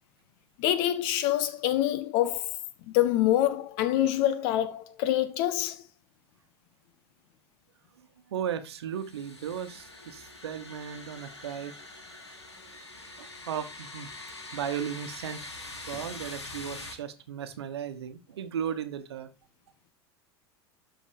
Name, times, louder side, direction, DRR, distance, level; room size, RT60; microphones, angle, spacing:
voice 1, 0.6-2.6 2.9-5.8, left 13 dB, 55° left, 1.3 m, -26 dB
voice 2, 8.3-11.7 13.2-14.1 14.5-19.3, right 8 dB, 70° right, 1.1 m, -36 dB
sound 1, 8.9-16.9, left 2 dB, 85° left, 1.9 m, -44 dB
12.0 x 4.1 x 5.0 m
figure-of-eight pair, 80°, 14 cm